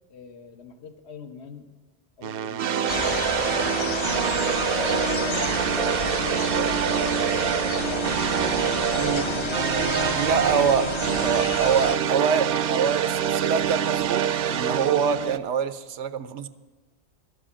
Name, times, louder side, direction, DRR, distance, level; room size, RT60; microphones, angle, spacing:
voice 1, 0.1-1.7 2.2-3.0 3.7-8.1 8.9-12.2, left 4 dB, 70° left, 7 dB, 1.3 m, -42 dB
sound 1, 2.2-15.4, right 9 dB, 65° right, 0.7 m, -26 dB
sound 2, 2.9-12.0, left 3 dB, 30° left, 0.6 m, -30 dB
voice 2, 9.0-9.5 10.2-10.9 11.2-16.5, right 7 dB, 85° right, 12 dB, 0.9 m, -25 dB
12.0 x 7.6 x 8.6 m, 1.3 s
omnidirectional pair, 1.2 m